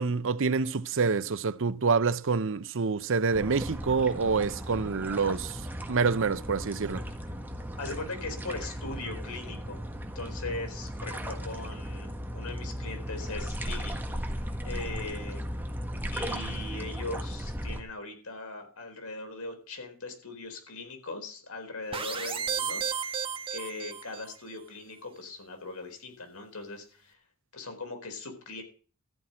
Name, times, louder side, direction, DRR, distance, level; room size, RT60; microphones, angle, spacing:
voice 1, 0.0-7.0, right 4 dB, 65° right, 0.7 m, -27 dB
sound 1, 3.3-17.8, equal, 10° right, 1.6 m, -36 dB
voice 2, 7.8-9.8 10.1-14.0 14.6-15.5 16.1-23.2 23.5-27.2 27.5-28.6, left 3 dB, 85° left, 4.4 m, -40 dB
sound 2, 21.9-24.4, right 7 dB, 25° right, 1.4 m, -33 dB
14.0 x 6.0 x 9.6 m
head